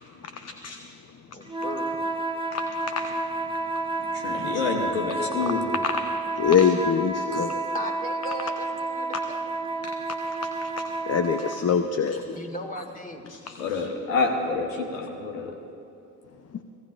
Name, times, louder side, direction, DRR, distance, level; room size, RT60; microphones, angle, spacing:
voice 1, 0.2-0.8 2.5-2.6 2.9-3.1 5.5-5.6 5.8-6.0 6.3-7.5 10.4-10.7 11.0-12.4 13.3-13.8, left 7 dB, 40° left, 7 dB, 0.8 m, -25 dB
voice 2, 1.3-2.2 7.7-9.4 12.3-13.2, equal, 20° left, 3 dB, 2.3 m, -37 dB
sound 1, 1.5-11.7, right 2 dB, 15° right, 1.0 m, -30 dB
voice 3, 4.1-5.7 13.6-15.5, left 4 dB, 90° left, 2 dB, 1.1 m, -28 dB
25.0 x 17.0 x 2.5 m, 2.8 s
hypercardioid pair, 40°, 39 cm